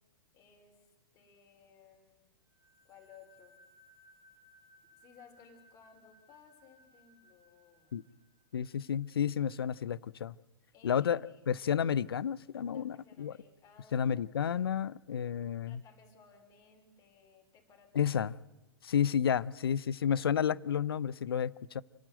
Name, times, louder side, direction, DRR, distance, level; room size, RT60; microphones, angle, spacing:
voice 1, 0.3-2.3 2.8-3.6 5.0-8.1 10.7-11.5 12.7-14.3 15.7-18.2, left 6 dB, 30° left, 4.9 m, -60 dB
sound 1, 2.5-9.0, left 1 dB, 55° right, 5.7 m, -64 dB
voice 2, 8.5-10.3 10.8-13.3 13.9-15.8 17.9-18.4 18.8-21.8, left 8 dB, 70° left, 0.6 m, -31 dB
29.0 x 10.5 x 9.2 m
figure-of-eight pair, 105°, 13 cm